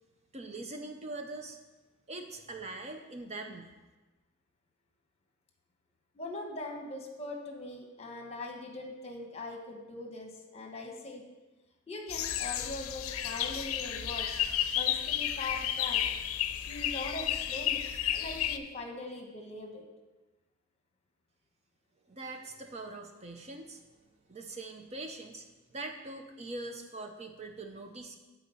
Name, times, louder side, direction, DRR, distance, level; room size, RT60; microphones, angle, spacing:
voice 1, 0.3-1.6 2.1-3.8 22.1-23.8 24.3-25.5 25.7-28.2, right 2 dB, 30° right, 4 dB, 0.6 m, -42 dB
voice 2, 6.1-11.2 11.9-14.3 14.7-16.0 16.6-17.8 18.1-19.8, left 2 dB, 30° left, 2 dB, 1.2 m, -41 dB
sound 1, 12.1-18.6, left 10 dB, 80° left, 0.5 m, -32 dB
8.6 x 4.0 x 7.0 m, 1.2 s
head